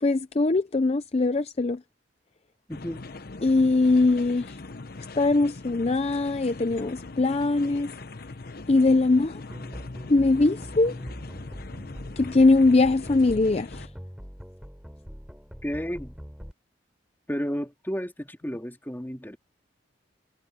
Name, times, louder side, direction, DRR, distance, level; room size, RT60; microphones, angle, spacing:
voice 1, 0.0-1.8 3.4-4.6 5.2-7.9 8.7-9.4 10.1-11.0 12.2-13.9, left 3 dB, 35° left, 0.6 m, -21 dB
sound 1, 2.7-13.9, left 3 dB, 55° left, 0.9 m, -41 dB
voice 2, 2.7-3.0 15.6-16.1 17.3-19.4, equal, 10° left, 2.9 m, -32 dB
sound 2, 9.5-16.5, equal, 5° right, 3.7 m, -42 dB
head